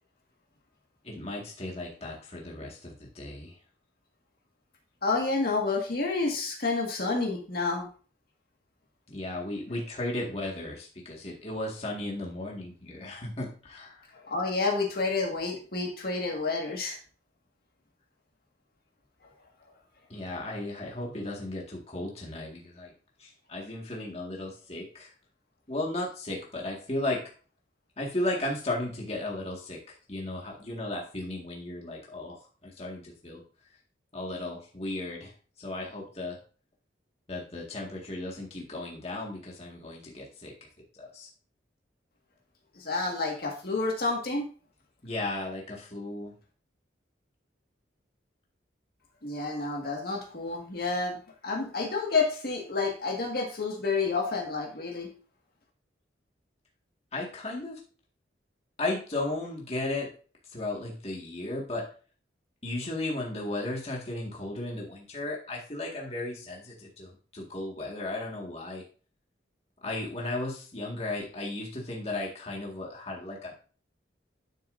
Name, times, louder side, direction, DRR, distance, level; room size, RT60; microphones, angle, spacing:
voice 1, 1.0-3.6 9.1-14.1 20.1-22.9 23.2-25.1 25.7-27.2 28.0-33.4 34.1-35.3 35.6-36.4 37.3-40.5 40.9-41.3 45.0-46.3 57.1-57.8 58.8-60.1 60.5-61.9 62.6-68.8 69.8-73.6, left 2 dB, 35° left, -2 dB, 1.9 m, -35 dB
voice 2, 5.0-7.9 14.3-17.0 42.8-44.5 49.2-51.2 51.4-55.1, left 3 dB, 55° left, 0 dB, 1.9 m, -29 dB
11.5 x 6.5 x 2.6 m, 0.39 s
head